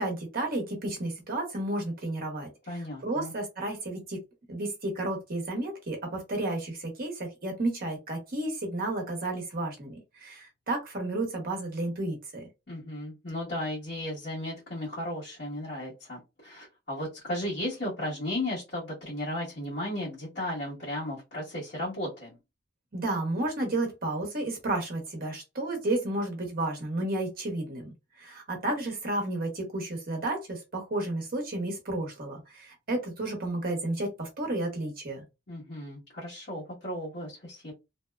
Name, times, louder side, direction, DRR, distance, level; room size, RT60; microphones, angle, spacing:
voice 1, 0.0-4.2 4.5-12.4 22.9-35.2, right 2 dB, 55° right, 0.9 m, -32 dB
voice 2, 2.7-3.3 12.7-22.4 35.5-37.7, left 1 dB, 65° left, 1.2 m, -35 dB
2.7 x 2.1 x 2.3 m
head